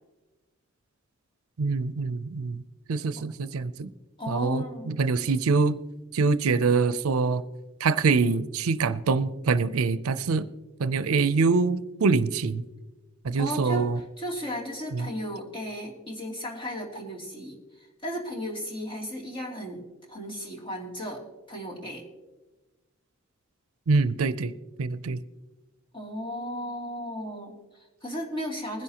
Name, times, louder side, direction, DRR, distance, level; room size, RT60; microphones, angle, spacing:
voice 1, 1.6-2.6 2.9-3.9 4.3-5.8 6.1-7.4 7.8-10.5 10.8-12.6 13.2-14.0 14.9-15.1 23.9-24.5 24.8-25.2, right 4 dB, 80° right, 15 dB, 0.5 m, -24 dB
voice 2, 4.2-5.0 13.3-21.2 21.5-22.1 25.9-28.8, equal, 25° left, -2 dB, 2.8 m, -35 dB
20.5 x 10.5 x 2.9 m, 1.1 s
head